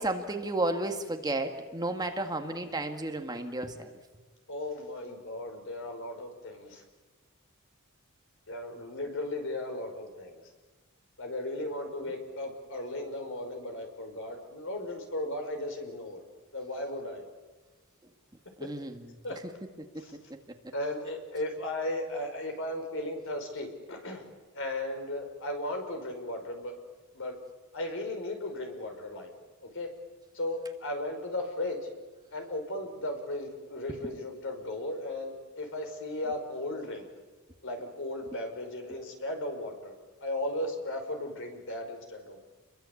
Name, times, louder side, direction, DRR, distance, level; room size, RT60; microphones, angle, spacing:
voice 1, 0.0-3.9 18.6-19.0 19.9-20.0 34.0-34.2, right 2 dB, 20° right, 5 dB, 1.8 m, -32 dB
voice 2, 4.5-6.8 8.5-10.4 11.2-16.2 16.5-17.3 18.6-18.7 19.2-19.4 20.0-20.2 20.7-26.7 27.1-27.4 27.7-29.3 29.6-29.9 30.3-31.9 32.3-37.1 37.6-39.9 40.2-42.4, left 1 dB, 60° left, 4 dB, 5.3 m, -36 dB
29.0 x 22.5 x 8.5 m, 1.2 s
head